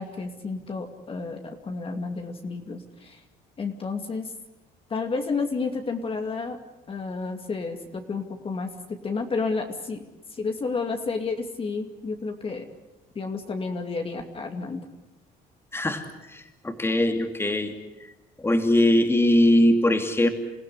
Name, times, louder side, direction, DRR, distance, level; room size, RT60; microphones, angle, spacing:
voice 1, 0.0-3.2 3.6-4.3 4.9-6.6 6.9-8.7 9.0-10.0 10.3-12.7 13.1-14.8, left 4 dB, 35° left, 4 dB, 2.5 m, -31 dB
voice 2, 15.7-16.0 16.3-17.7 18.4-20.3, left 1 dB, 15° left, 6 dB, 2.7 m, -21 dB
28.0 x 16.5 x 9.7 m, 1.0 s
cardioid pair, 110°, 17 cm